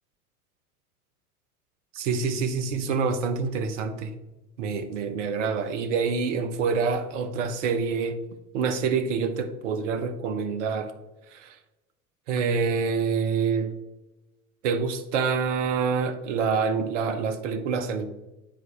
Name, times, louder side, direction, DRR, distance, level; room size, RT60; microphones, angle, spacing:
voice 1, 1.9-4.1 4.6-8.2 8.5-10.9 11.3-11.5 12.3-13.7 14.6-18.1, right 5 dB, 50° right, 0.9 m, -26 dB
10.0 x 4.6 x 3.1 m
figure-of-eight pair, 85°, 45 cm